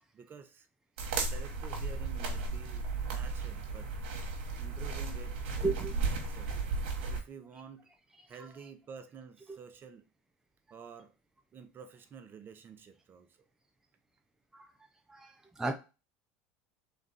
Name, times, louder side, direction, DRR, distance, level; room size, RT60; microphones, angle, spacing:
voice 1, 0.1-0.7 1.2-3.9 4.6-6.6 7.1-7.9 8.3-10.0 10.7-11.1 11.5-13.5, right 6 dB, 40° right, 0.9 m, -50 dB
sound 1, 1.0-7.2, right 4 dB, 80° right, 1.2 m, -35 dB
voice 2, 5.6-5.9 14.5-14.7 15.1-15.7, right 3 dB, 10° right, 0.6 m, -34 dB
3.7 x 3.3 x 4.1 m
hypercardioid pair, 90°, 6 cm